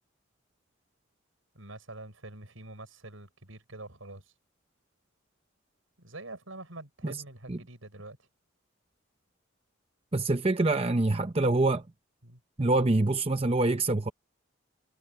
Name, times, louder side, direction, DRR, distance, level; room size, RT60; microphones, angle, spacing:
voice 1, 1.5-4.3 6.0-8.3 12.2-12.4, right 2 dB, 80° right, 6.0 m, -45 dB
voice 2, 10.1-11.8 12.6-14.1, right 2 dB, 30° right, 0.8 m, -25 dB
head